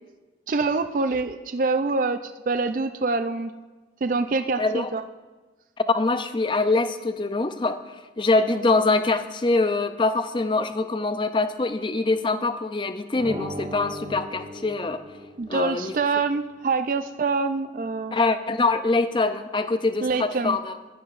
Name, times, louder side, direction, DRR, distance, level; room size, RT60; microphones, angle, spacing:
voice 1, 0.5-3.5 4.0-5.0 15.4-18.2 20.0-20.6, right 4 dB, 50° right, 9 dB, 0.4 m, -25 dB
voice 2, 4.6-4.9 5.9-15.0 15.5-15.9 18.1-20.7, left 3 dB, 30° left, 10 dB, 0.5 m, -24 dB
sound 1, 13.1-15.8, equal, 30° right, 1.5 m, -37 dB
16.0 x 11.0 x 2.5 m, 1.3 s
head